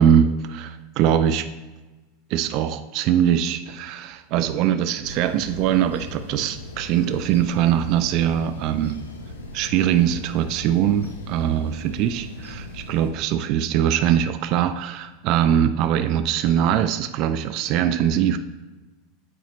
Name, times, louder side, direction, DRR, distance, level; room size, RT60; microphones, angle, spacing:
voice 1, 0.0-1.4 2.3-9.0 9.5-18.4, right 9 dB, 55° right, 10 dB, 0.3 m, -22 dB
sound 1, 5.0-13.1, left 2 dB, 90° left, 0.7 m, -38 dB
8.5 x 4.2 x 3.0 m, 1.2 s
hypercardioid pair, 90°, 0 cm